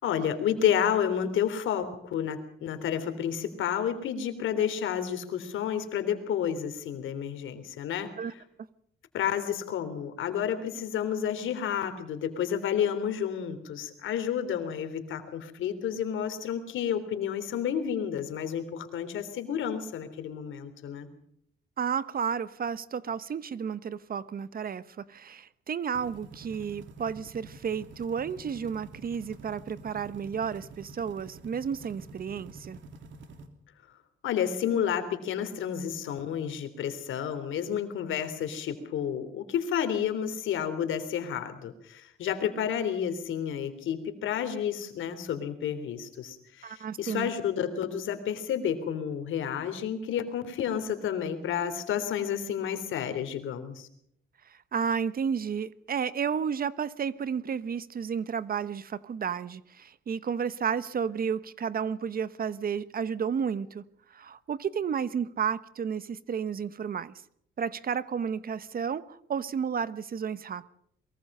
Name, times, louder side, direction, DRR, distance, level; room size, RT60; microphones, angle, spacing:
voice 1, 0.0-8.4 9.1-21.1 34.2-53.9, left 9 dB, 80° left, 3.4 m, -30 dB
voice 2, 21.8-32.8 46.6-47.3 54.7-63.8 64.1-67.1 67.6-70.7, right 7 dB, 45° right, 1.1 m, -32 dB
sound 1, 25.9-33.5, right 3 dB, 75° right, 3.3 m, -48 dB
23.0 x 23.0 x 5.5 m
cardioid pair, 90°, 20 cm